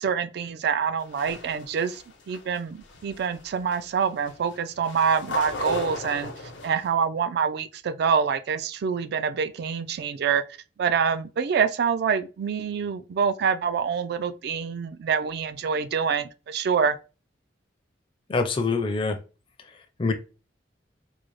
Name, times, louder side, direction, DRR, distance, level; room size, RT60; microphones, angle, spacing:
voice 1, 0.0-6.3 6.6-10.4 10.8-17.0, right 6 dB, 60° right, 0.3 m, -26 dB
sound 1, 1.0-6.9, left 2 dB, 90° left, 0.8 m, -37 dB
voice 2, 18.3-19.2 20.0-20.2, left 4 dB, 30° left, 0.4 m, -24 dB
3.8 x 2.0 x 3.1 m
head